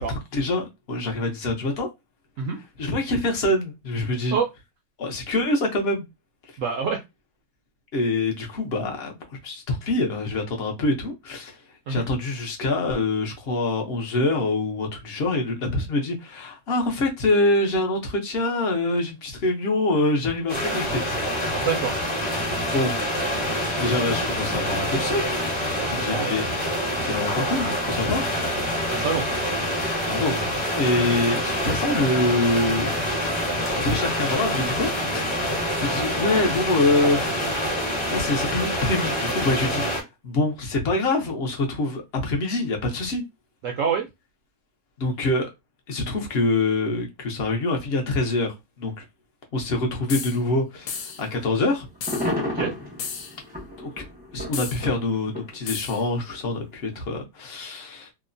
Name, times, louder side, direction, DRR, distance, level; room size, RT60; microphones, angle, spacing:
voice 1, 0.3-1.9 2.8-4.4 5.0-6.0 7.9-21.2 22.7-23.5 23.8-25.3 25.9-26.5 27.0-28.3 30.1-30.5 30.7-33.0 33.5-37.4 38.1-39.9 40.2-43.2 45.0-45.5 45.9-49.0 49.5-51.9 53.8-54.1 54.3-58.1, left 2 dB, 60° left, 0.7 m, -25 dB
voice 2, 6.6-7.0 11.9-12.0 21.6-22.0 25.7-26.3 28.9-29.3 43.6-44.1 52.5-52.7, right 6 dB, 75° right, 0.7 m, -26 dB
sound 1, 20.5-40.0, equal, 25° left, 0.7 m, -26 dB
sound 2, 50.1-50.4 50.9-51.3 52.0-52.3 53.0-53.4 54.5-54.8 55.7-56.0, left 6 dB, 75° left, 1.1 m, -33 dB
sound 3, 50.9-51.2 51.6-51.7 51.9-56.3 57.0-57.1, left 1 dB, 15° right, 0.3 m, -31 dB
2.9 x 2.0 x 2.5 m
omnidirectional pair, 1.8 m